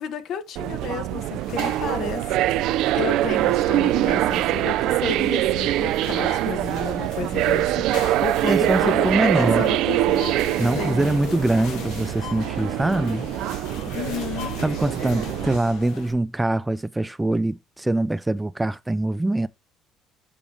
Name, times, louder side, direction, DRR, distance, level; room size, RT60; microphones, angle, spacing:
voice 1, 0.0-2.2 2.9-7.9 8.2-11.2 13.9-14.6, left 7 dB, 60° left, 1.2 m, -32 dB
sound 1, 0.6-15.6, right 14 dB, 75° right, 0.4 m, -24 dB
sound 2, 1.4-16.1, left 5 dB, 85° left, 2.4 m, -39 dB
voice 2, 8.5-9.7 10.6-13.3 14.6-19.5, right 2 dB, 10° right, 0.4 m, -23 dB
7.1 x 4.8 x 3.5 m
cardioid pair, 105°, 0 cm